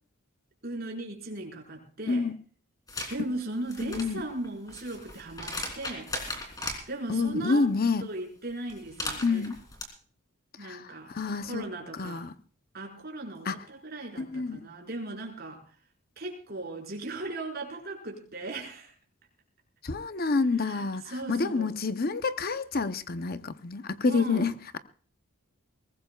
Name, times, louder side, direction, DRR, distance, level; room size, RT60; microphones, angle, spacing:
voice 1, 0.6-2.3 3.1-6.1 6.9-7.7 8.0-9.5 10.6-11.1 11.4-12.2 12.7-15.6 16.2-19.0 20.6-21.7 24.0-24.5, right 2 dB, 45° right, 5.2 m, -37 dB
voice 2, 2.1-2.4 3.8-4.2 7.1-8.0 9.2-9.6 10.6-11.7 11.9-12.3 13.5-13.6 14.2-14.6 19.8-24.8, left 4 dB, 45° left, 0.8 m, -28 dB
sound 1, 2.9-3.2 3.6-6.8 8.7-9.8, left 2 dB, 20° left, 3.3 m, -37 dB
22.0 x 19.0 x 2.4 m
head